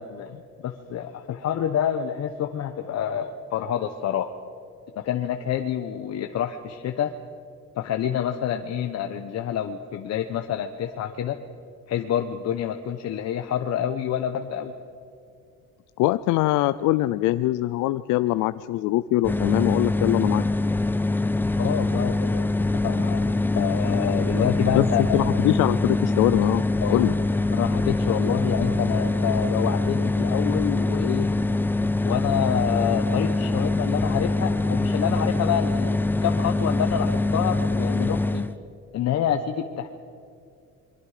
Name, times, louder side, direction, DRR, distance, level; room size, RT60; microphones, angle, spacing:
voice 1, 0.0-4.3 5.0-7.1 7.8-11.4 11.9-14.7 21.6-22.5 22.8-25.2 26.8-27.0 27.5-31.3 32.0-38.4 38.9-39.9, left 9 dB, 60° left, 5 dB, 1.1 m, -27 dB
voice 2, 16.0-20.5 24.7-24.8 25.1-27.1, left 16 dB, 80° left, 13 dB, 0.6 m, -23 dB
sound 1, 19.2-38.5, left 2 dB, 5° left, 0.7 m, -24 dB
27.5 x 22.5 x 5.0 m, 2.4 s
cardioid pair, 130°, 30 cm